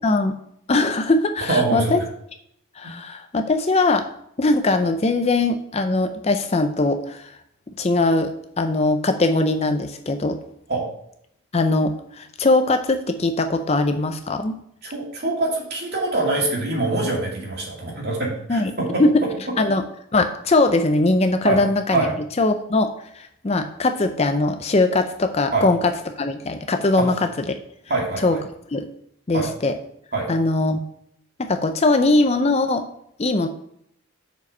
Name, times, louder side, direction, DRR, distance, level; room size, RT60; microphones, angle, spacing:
voice 1, 0.0-0.4 0.7-2.0 2.8-4.1 4.4-7.3 7.8-10.4 11.5-14.6 18.5-18.7 19.0-19.2 19.6-19.8 20.1-22.1 22.4-22.9 23.1-27.2 27.5-27.6 28.2-28.4 28.7-28.9 29.3-29.7 30.3-30.8 31.4-32.9 33.2-33.5, left 2 dB, 30° left, 7 dB, 0.5 m, -20 dB
voice 2, 1.5-1.9 2.8-2.9 10.7-10.9 14.8-19.0 21.4-21.6 21.9-22.1 25.5-25.7 27.0-27.1 27.9-28.4 29.3-29.5 30.1-30.3, right 2 dB, 50° right, -2 dB, 2.4 m, -24 dB
6.8 x 5.0 x 5.3 m, 0.71 s
head